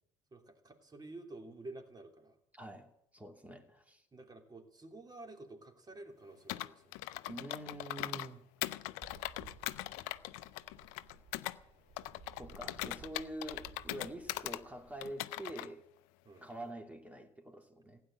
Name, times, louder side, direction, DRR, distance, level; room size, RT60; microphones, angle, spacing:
voice 1, 0.3-2.3 4.1-6.9 12.5-12.7 16.2-16.5, right 2 dB, 25° right, 4 dB, 3.1 m, -51 dB
voice 2, 2.5-4.0 7.3-8.4 12.4-15.8 16.4-18.0, right 1 dB, 10° right, 4 dB, 2.8 m, -46 dB
Computer keyboard, 6.5-8.3 8.6-11.6 12.0-14.6 15.0-15.7, left 18 dB, 70° left, 0.5 m, -40 dB
sound 1, 9.0-15.1, right 5 dB, 50° right, 2.4 m, -58 dB
16.0 x 9.2 x 8.8 m, 0.76 s
hypercardioid pair, 55°, 15 cm